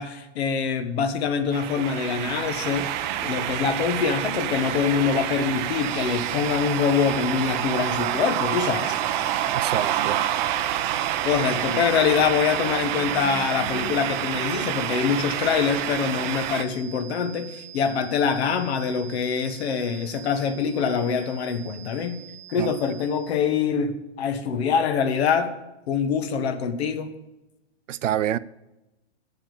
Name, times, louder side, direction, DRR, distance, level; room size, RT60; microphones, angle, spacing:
voice 1, 0.0-2.9 3.2-9.0 11.2-22.2 22.5-25.5 25.9-27.1, left 6 dB, 60° left, 1.5 m, -24 dB
sound 1, 1.5-16.6, right 11 dB, 40° right, 0.8 m, -27 dB
sound 2, 5.7-23.5, right 12 dB, ahead, 1.2 m, -45 dB
voice 2, 9.5-10.2 22.6-22.7 27.9-28.4, right 11 dB, 90° right, 0.6 m, -27 dB
9.6 x 7.3 x 7.0 m
hypercardioid pair, 135°, 36 cm